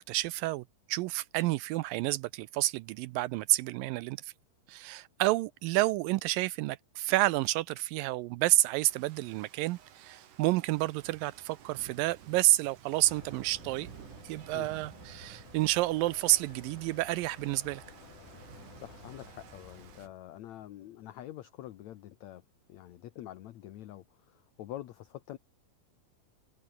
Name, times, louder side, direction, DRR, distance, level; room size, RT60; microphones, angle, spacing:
voice 1, 0.1-4.3 4.7-13.9 14.2-17.8, right 17 dB, 80° right, 2.2 m, -29 dB
Rain, 8.8-20.1, right 9 dB, 65° right, 3.4 m, -53 dB
sound 1, 13.0-20.1, left 11 dB, 85° left, 3.6 m, -54 dB
voice 2, 18.8-22.4 22.7-25.4, left 13 dB, 65° left, 1.9 m, -46 dB
omnidirectional pair, 4.1 m